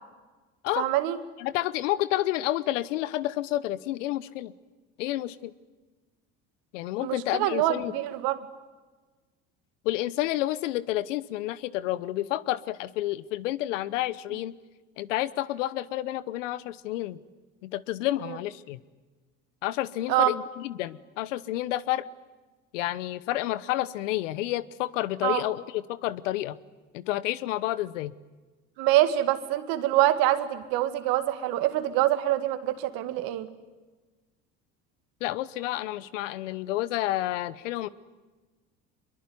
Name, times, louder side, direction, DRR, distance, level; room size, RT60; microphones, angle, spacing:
voice 1, 0.8-1.2 7.0-8.4 18.2-18.4 20.1-20.3 25.2-25.4 28.8-33.5, right 14 dB, 70° right, 10 dB, 2.1 m, -25 dB
voice 2, 1.4-4.5 5.0-5.5 6.7-7.9 9.8-14.5 15.0-17.2 17.6-18.8 19.6-22.0 22.7-26.6 26.9-28.1 35.2-37.9, left 15 dB, 85° left, 17 dB, 1.0 m, -30 dB
23.5 x 22.0 x 9.7 m, 1.3 s
hypercardioid pair, 80°, 36 cm